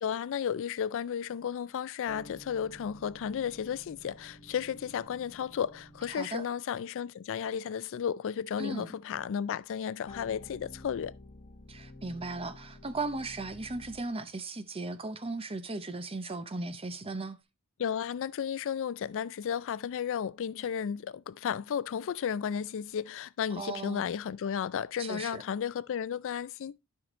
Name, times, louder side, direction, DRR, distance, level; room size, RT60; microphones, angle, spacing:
voice 1, 0.0-11.1 17.8-26.8, left 8 dB, 60° left, 0.4 m, -33 dB
sound 1, 2.1-6.5 10.1-14.2, left 1 dB, 30° left, 1.2 m, -51 dB
voice 2, 6.1-6.4 8.6-9.0 11.7-17.4 23.5-24.1 25.0-25.4, right 3 dB, 25° right, 0.8 m, -37 dB
12.0 x 5.8 x 3.0 m
head